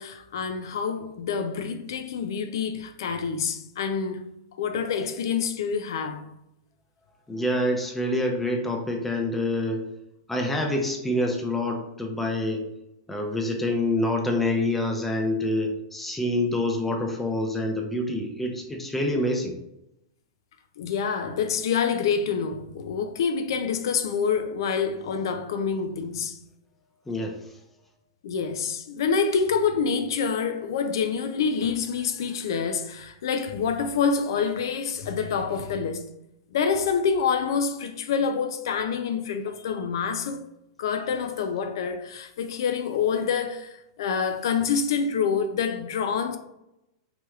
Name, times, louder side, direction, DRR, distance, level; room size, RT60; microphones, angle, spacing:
voice 1, 0.0-4.3 4.6-6.3 20.8-26.4 28.2-36.1 36.5-40.5 40.8-43.7 44.0-46.4, left 6 dB, 70° left, 0.3 m, -27 dB
voice 2, 7.3-9.8 10.3-12.7 13.1-19.6 27.1-27.4, left 1 dB, 5° left, 0.5 m, -26 dB
3.3 x 2.8 x 2.3 m
hypercardioid pair, 130°, 2 cm